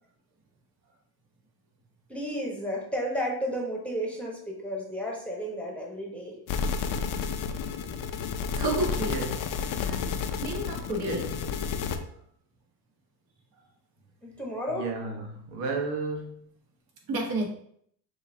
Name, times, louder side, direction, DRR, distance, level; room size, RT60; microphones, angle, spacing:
voice 1, 2.1-6.4 14.2-14.9, equal, 5° left, 1.2 m, -32 dB
sound 1, 6.5-12.0, left 6 dB, 45° left, 0.6 m, -31 dB
voice 2, 8.6-9.2 9.7-10.1 10.4-11.2 17.1-17.5, right 1 dB, 50° right, 1.8 m, -30 dB
voice 3, 9.1-9.4 11.0-11.3 14.7-16.5, right 4 dB, 75° right, 1.2 m, -33 dB
6.6 x 2.7 x 2.8 m
supercardioid pair, 105°, 48 cm